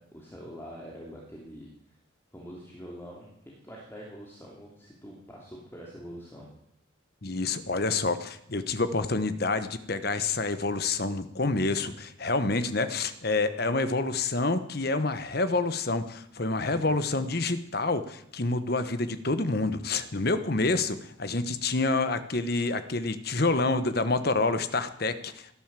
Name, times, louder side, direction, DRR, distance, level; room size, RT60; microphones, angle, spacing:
voice 1, 0.0-2.0 2.3-6.5 16.7-17.0, equal, 10° left, -3 dB, 2.9 m, -45 dB
voice 2, 7.2-25.5, left 3 dB, 50° left, 11 dB, 1.2 m, -28 dB
17.0 x 11.0 x 7.6 m, 0.75 s
head